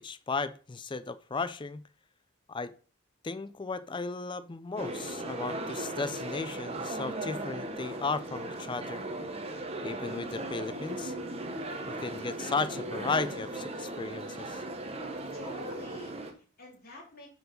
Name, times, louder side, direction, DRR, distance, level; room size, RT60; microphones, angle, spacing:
voice 1, 0.0-1.8 2.5-2.7 3.2-9.0 9.8-11.1 11.9-14.6, left 4 dB, 20° left, 15 dB, 0.4 m, -35 dB
sound 1, 4.8-16.3, right 2 dB, 30° right, 1.0 m, -37 dB
voice 2, 15.3-17.3, left 1 dB, 45° left, -1 dB, 2.9 m, -47 dB
7.9 x 4.7 x 5.1 m, 0.39 s
head